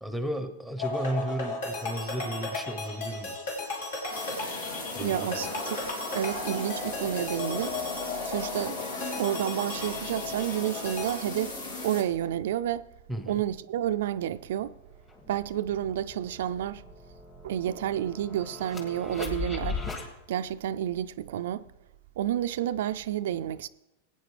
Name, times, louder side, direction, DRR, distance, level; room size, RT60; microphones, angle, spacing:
voice 1, 0.0-3.4 4.9-5.5 13.1-13.4, equal, 5° left, 0.9 m, -34 dB
sound 1, 0.8-11.1, left 3 dB, 70° left, 3.3 m, -35 dB
sound 2, 4.1-12.0, left 3 dB, 85° left, 3.1 m, -37 dB
voice 2, 5.0-5.8 6.1-7.8 8.2-8.8 9.2-12.9 13.3-14.8 15.3-16.8 17.4-21.6 22.2-23.7, right 11 dB, 75° right, 0.3 m, -30 dB
sound 3, 14.6-14.7 15.1-20.1, left 4 dB, 25° left, 2.0 m, -39 dB
16.0 x 9.3 x 3.3 m
hypercardioid pair, 125°, 0 cm